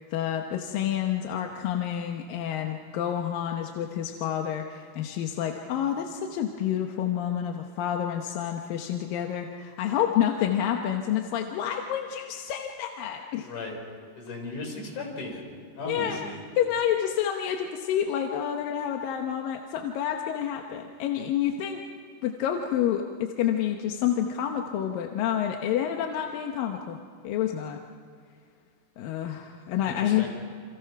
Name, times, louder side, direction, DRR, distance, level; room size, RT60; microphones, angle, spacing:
voice 1, 0.1-13.5 15.9-16.2 16.6-21.8 22.2-27.0 27.2-27.8 29.0-30.3, left 10 dB, 70° left, 3 dB, 2.5 m, -28 dB
voice 2, 13.4-13.8 14.2-15.4 15.8-16.4 29.9-30.3, left 2 dB, 50° left, 1 dB, 5.7 m, -36 dB
28.5 x 26.5 x 5.9 m, 2.2 s
omnidirectional pair, 4.8 m